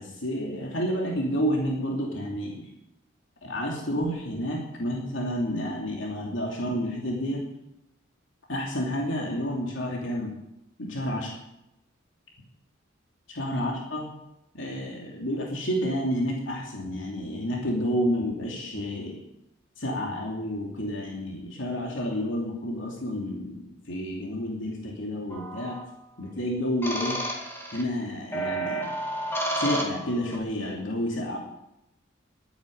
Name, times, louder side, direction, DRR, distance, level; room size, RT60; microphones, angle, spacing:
voice 1, 0.0-2.7 3.4-7.4 8.5-10.3 10.8-11.3 13.3-14.1 14.5-19.2 19.8-23.6 23.9-25.8 26.2-27.2 27.7-28.9 29.6-31.4, equal, 70° left, -1 dB, 2.9 m, -30 dB
sound 1, 25.3-25.8 26.8-27.8 28.3-30.4, right 1 dB, 10° left, 2.2 m, -31 dB
12.0 x 9.4 x 8.8 m, 0.87 s
head